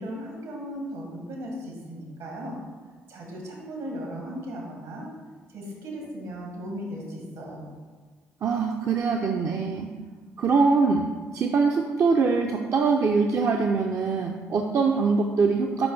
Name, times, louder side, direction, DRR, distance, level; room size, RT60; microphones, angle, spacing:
voice 1, 0.0-2.6 3.1-5.1 5.5-7.7, equal, 75° right, -1 dB, 1.8 m, -36 dB
voice 2, 8.4-9.9 10.4-15.9, right 4 dB, 50° right, 2 dB, 0.5 m, -23 dB
6.1 x 5.1 x 3.3 m, 1.4 s
hypercardioid pair, 50°, 7 cm